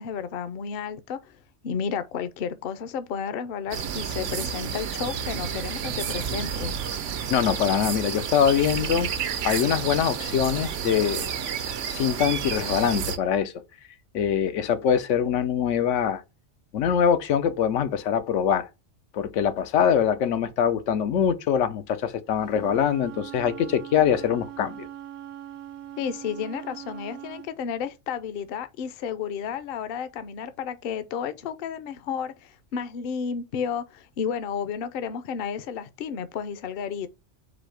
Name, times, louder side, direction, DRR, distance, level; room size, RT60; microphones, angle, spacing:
voice 1, 0.0-1.3 1.6-6.8 26.0-37.1, left 7 dB, 60° left, 0.7 m, -32 dB
sound 1, 3.7-13.2, right 7 dB, 85° right, 1.0 m, -30 dB
voice 2, 7.3-9.1 9.4-11.3 11.9-13.5 14.1-16.2 16.7-18.7 19.1-24.9, left 8 dB, 90° left, 1.0 m, -23 dB
Wind instrument woodwind instrument, 22.4-27.5, right 11 dB, 55° right, 0.5 m, -41 dB
4.2 x 2.7 x 4.5 m
omnidirectional pair, 1.2 m